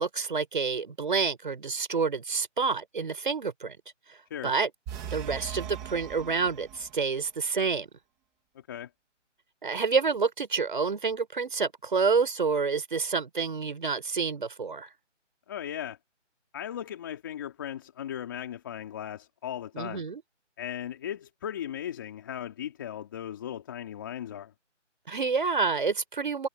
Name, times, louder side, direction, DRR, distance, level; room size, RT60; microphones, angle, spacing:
voice 1, 0.0-3.8 4.4-4.7 5.1-7.9 9.6-14.9 19.7-20.2 25.1-26.5, right 5 dB, 40° right, 5.5 m, -28 dB
sound 1, 4.9-7.1, right 9 dB, ahead, 1.2 m, -39 dB
voice 2, 15.5-16.0 16.5-20.0 20.6-24.5, left 10 dB, 15° left, 3.1 m, -37 dB
figure-of-eight pair, 170°, 37 cm